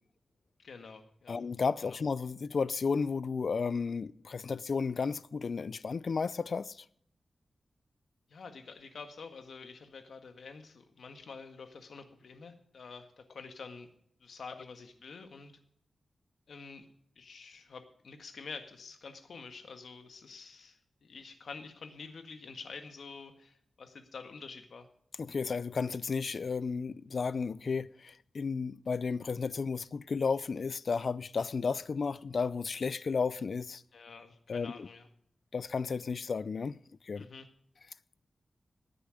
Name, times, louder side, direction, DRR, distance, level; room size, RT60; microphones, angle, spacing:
voice 1, 0.6-1.4 1.8-2.0 8.3-13.9 14.2-15.5 16.5-16.9 17.2-24.9 33.9-35.1 37.2-37.5, left 4 dB, 75° left, 1.8 m, -48 dB
voice 2, 1.3-6.9 14.6-14.7 25.2-33.8 34.5-34.9 35.5-36.8 37.0-37.3, left 5 dB, 55° left, 0.5 m, -33 dB
18.0 x 10.0 x 5.0 m
wide cardioid pair, 165°, 0 cm